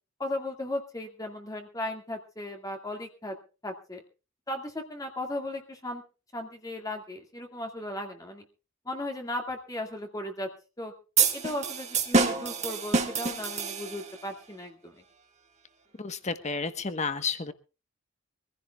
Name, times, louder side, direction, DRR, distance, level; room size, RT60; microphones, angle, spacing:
voice 1, 0.2-3.3 3.6-4.0 4.5-6.0 6.3-8.4 8.9-10.5 10.8-10.9 11.3-15.0, left 1 dB, 20° left, 3 dB, 2.1 m, -36 dB
sound 1, 11.2-14.2, right 5 dB, 35° right, 1.8 m, -27 dB
voice 2, 16.0-17.5, left 4 dB, 35° left, 11 dB, 1.2 m, -31 dB
24.5 x 15.5 x 2.4 m, 0.33 s
head